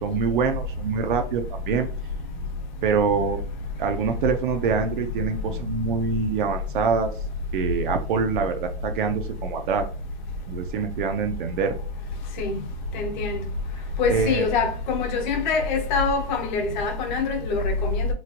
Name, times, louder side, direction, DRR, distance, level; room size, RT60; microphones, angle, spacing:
voice 1, 0.0-1.9 2.8-3.4 3.8-7.1 7.5-9.9 10.5-11.7 14.1-14.4, right 6 dB, 60° right, 0.5 m, -25 dB
voice 2, 12.9-13.4 14.0-18.1, left 4 dB, 50° left, 0.9 m, -24 dB
3.0 x 2.4 x 2.7 m
hypercardioid pair, 140°, 29 cm